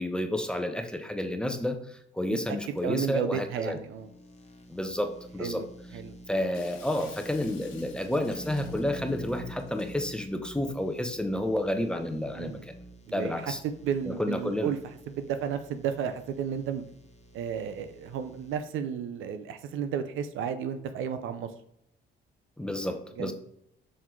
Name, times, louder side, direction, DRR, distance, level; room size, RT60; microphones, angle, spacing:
voice 1, 0.0-3.8 4.7-5.6 6.3-12.6 13.1-13.6 14.0-14.7 22.6-23.3, left 1 dB, 5° left, 6 dB, 0.8 m, -30 dB
sound 1, 2.8-18.6, right 1 dB, 35° left, 1.2 m, -48 dB
voice 2, 2.8-4.1 5.4-5.7 5.9-6.2 12.4-12.6 13.1-14.8 15.1-16.8 17.3-21.5 23.2-23.3, right 8 dB, 85° right, 10 dB, 0.6 m, -33 dB
Shatter, 6.5-10.0, left 7 dB, 80° left, 1.0 m, -52 dB
6.4 x 3.7 x 4.6 m, 0.75 s
cardioid pair, 90°, 20 cm